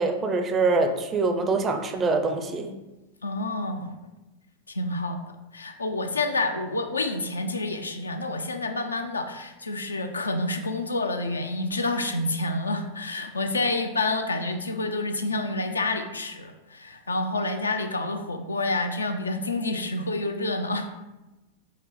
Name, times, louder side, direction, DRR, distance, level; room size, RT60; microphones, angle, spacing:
voice 1, 0.0-2.7, right 3 dB, 25° right, 5 dB, 0.4 m, -24 dB
voice 2, 3.2-3.9 4.7-5.2 5.5-20.9, left 2 dB, 75° left, 6 dB, 0.3 m, -28 dB
3.8 x 2.0 x 4.0 m, 1.0 s
figure-of-eight pair, 90°, 0 cm